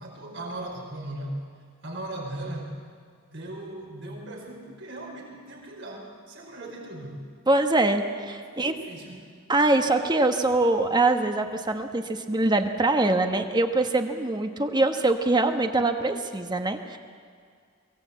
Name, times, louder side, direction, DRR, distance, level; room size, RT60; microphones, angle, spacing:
voice 1, 0.0-1.4 1.8-2.8 3.3-7.2 8.5-9.3, right 1 dB, 65° right, 0 dB, 5.0 m, -38 dB
voice 2, 7.5-8.8 9.5-17.0, right 2 dB, 20° right, 6 dB, 1.2 m, -23 dB
23.0 x 17.0 x 8.4 m, 2.1 s
head